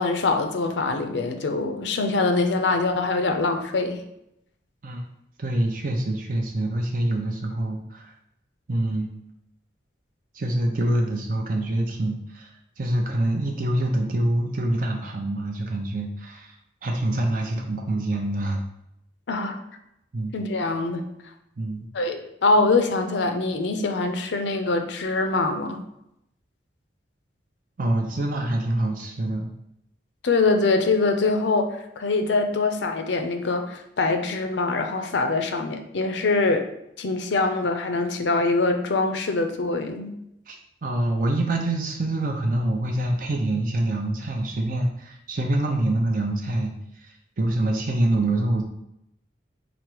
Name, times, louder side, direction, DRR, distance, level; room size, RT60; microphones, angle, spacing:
voice 1, 0.0-4.0 19.3-19.6 20.3-21.1 21.9-25.8 30.2-36.7 37.0-40.1, left 3 dB, 70° left, 6 dB, 0.5 m, -24 dB
voice 2, 5.4-8.1 8.7-9.2 10.3-16.5 16.8-18.6 20.1-20.3 21.6-21.9 27.8-29.5 40.5-48.6, right 1 dB, 45° right, 1 dB, 0.5 m, -26 dB
5.1 x 2.0 x 4.5 m, 0.81 s
head